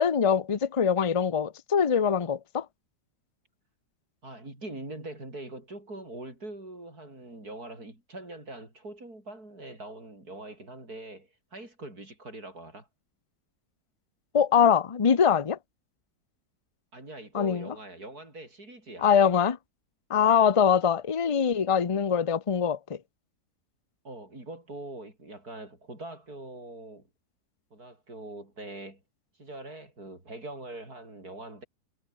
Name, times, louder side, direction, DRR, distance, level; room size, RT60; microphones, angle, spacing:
voice 1, 0.0-2.7 14.3-15.6 17.3-17.7 19.0-19.6 20.1-23.0, left 7 dB, 60° left, 0.3 m, -23 dB
voice 2, 4.2-12.9 16.9-19.1 24.0-27.1 27.7-29.0 29.4-31.6, right 2 dB, 65° right, 8.2 m, -43 dB
omnidirectional pair, 1.8 m